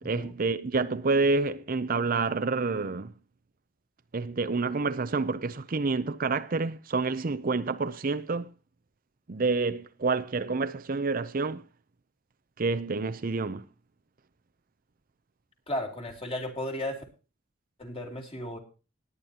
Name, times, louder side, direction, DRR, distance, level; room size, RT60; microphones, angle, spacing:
voice 1, 0.0-3.1 4.1-8.5 9.3-11.6 12.6-13.6, right 3 dB, 40° right, 0.5 m, -28 dB
voice 2, 15.7-17.0 17.8-18.6, left 1 dB, 25° left, 2.8 m, -34 dB
20.0 x 9.6 x 2.8 m
head